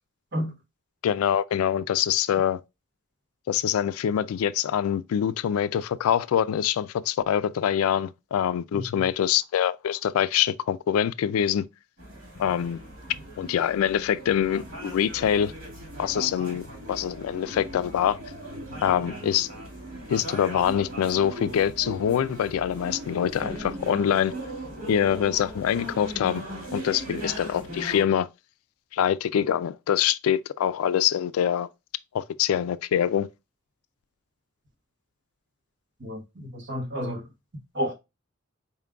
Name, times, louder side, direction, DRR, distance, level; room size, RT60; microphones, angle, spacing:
voice 1, 1.0-2.6 3.5-11.6 12.4-12.8 13.4-15.5 16.0-18.2 18.8-19.5 20.1-24.3 24.9-26.4 26.7-28.3 28.9-31.7 32.1-33.3, left 9 dB, 80° left, 0.3 m, -24 dB
voice 2, 8.7-9.0 36.0-37.2 37.7-37.9, equal, 55° right, 1.2 m, -31 dB
sound 1, 12.0-28.0, right 1 dB, 85° right, 2.1 m, -39 dB
4.4 x 3.7 x 2.3 m
head